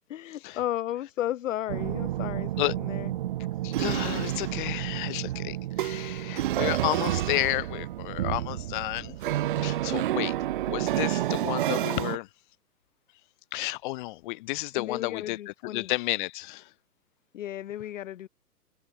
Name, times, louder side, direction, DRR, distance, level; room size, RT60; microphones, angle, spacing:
voice 1, 0.1-3.1 14.7-15.9 17.3-18.3, left 12 dB, 55° left, 0.6 m, -34 dB
sound 1, 1.7-12.2, right 14 dB, 35° right, 0.8 m, -30 dB
voice 2, 3.6-9.2 9.6-10.3 10.7-12.3 13.5-16.7, left 20 dB, 30° left, 1.6 m, -32 dB
hypercardioid pair, 135°, 47 cm